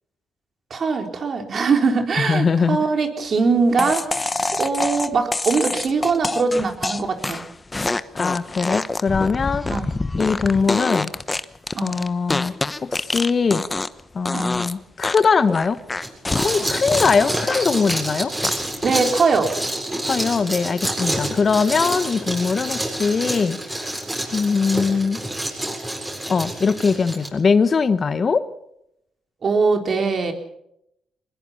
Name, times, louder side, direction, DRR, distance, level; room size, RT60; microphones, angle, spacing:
voice 1, 0.7-7.4 9.7-9.9 11.7-11.9 14.3-14.5 18.8-19.6 29.4-30.3, right 4 dB, 50° right, 5 dB, 3.9 m, -21 dB
voice 2, 2.2-2.8 8.2-9.7 10.2-11.1 11.8-12.5 12.8-13.6 14.1-15.8 16.3-18.3 20.0-24.0 24.3-25.2 26.3-28.4, left 5 dB, 45° left, 13 dB, 1.3 m, -21 dB
sound 1, 3.8-14.0 14.3-14.7 15.0-18.1 18.4-18.9, left 2 dB, 20° left, 1.1 m, -26 dB
sound 2, 16.0-27.3, right 1 dB, 15° right, 7.9 m, -27 dB
23.5 x 21.0 x 5.7 m, 0.78 s
cardioid pair, 75°, 0 cm